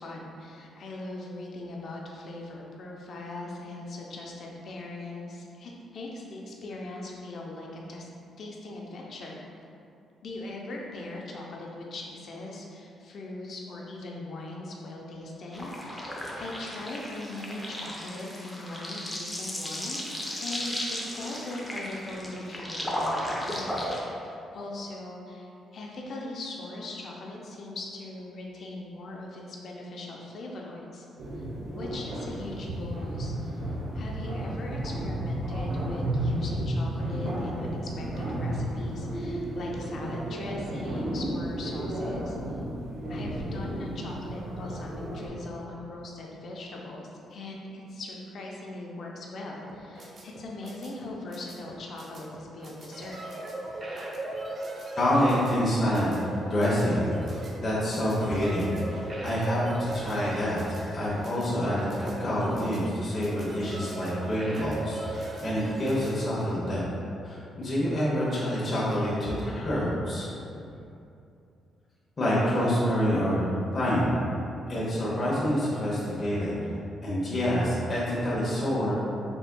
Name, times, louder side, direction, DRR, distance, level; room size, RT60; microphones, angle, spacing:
voice 1, 0.0-8.1 8.4-9.4 10.2-23.8 24.0-31.1 31.3-31.4 31.7-42.4 43.1-53.2, left 2 dB, 55° left, -2 dB, 0.6 m, -40 dB
sound 1, 15.5-24.0, equal, 5° left, 0.5 m, -35 dB
sound 2, 31.2-45.3, right 1 dB, 75° right, 0.8 m, -32 dB
sound 3, 49.7-66.1, right 2 dB, 40° right, 0.5 m, -38 dB
voice 2, 55.0-56.1 56.5-57.2 57.6-60.6 60.9-66.8 67.2-70.3 72.2-73.5 73.7-74.2 74.7-76.5 77.0-78.9, equal, 30° left, -8 dB, 0.8 m, -27 dB
4.0 x 3.4 x 2.2 m, 2.6 s
cardioid pair, 110°, 0 cm